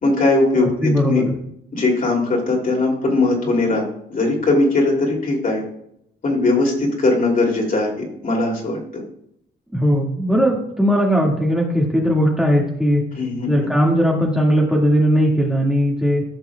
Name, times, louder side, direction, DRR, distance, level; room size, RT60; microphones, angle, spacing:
voice 1, 0.0-1.2 1.7-3.8 4.1-5.6 6.2-9.0 13.1-13.7, left 2 dB, 45° left, -1 dB, 3.0 m, -19 dB
voice 2, 0.6-1.3 9.7-13.0 13.5-16.2, equal, 5° right, -3 dB, 2.0 m, -18 dB
14.5 x 5.9 x 2.4 m, 0.73 s
cardioid pair, 90°, 20 cm